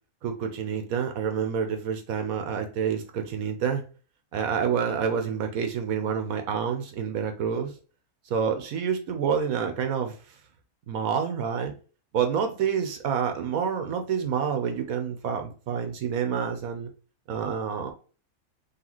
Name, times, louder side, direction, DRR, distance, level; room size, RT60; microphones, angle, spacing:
voice 1, 0.2-3.8 4.3-7.7 8.3-10.2 10.9-11.7 12.1-16.9 17.3-17.9, right 7 dB, 75° right, 6 dB, 1.1 m, -28 dB
4.0 x 3.2 x 2.9 m, 0.37 s
omnidirectional pair, 1.5 m